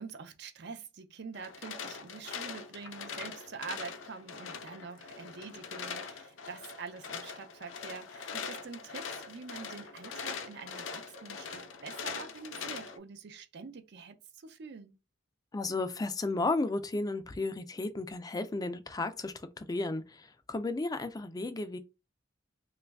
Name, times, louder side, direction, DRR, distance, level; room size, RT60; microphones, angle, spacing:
voice 1, 0.0-15.0, right 5 dB, 60° right, 0.5 m, -46 dB
sound 1, 1.3-13.0, left 5 dB, 75° left, 0.5 m, -42 dB
voice 2, 15.5-21.8, left 2 dB, 20° left, 0.4 m, -34 dB
3.0 x 2.4 x 3.4 m
head